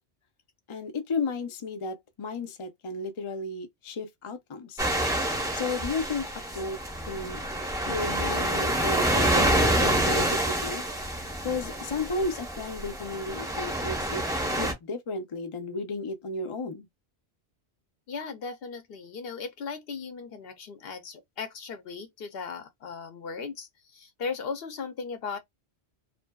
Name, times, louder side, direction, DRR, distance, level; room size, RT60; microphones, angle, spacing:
voice 1, 0.7-4.9 5.5-6.3 6.5-6.8 7.1-7.4 7.9-10.8 11.4-14.2 14.6-16.9, left 3 dB, 40° left, 0.4 m, -33 dB
sound 1, 4.8-14.7, right 1 dB, 5° right, 0.6 m, -27 dB
voice 2, 18.1-25.4, left 5 dB, 65° left, 0.8 m, -37 dB
2.6 x 2.5 x 2.2 m
omnidirectional pair, 1.2 m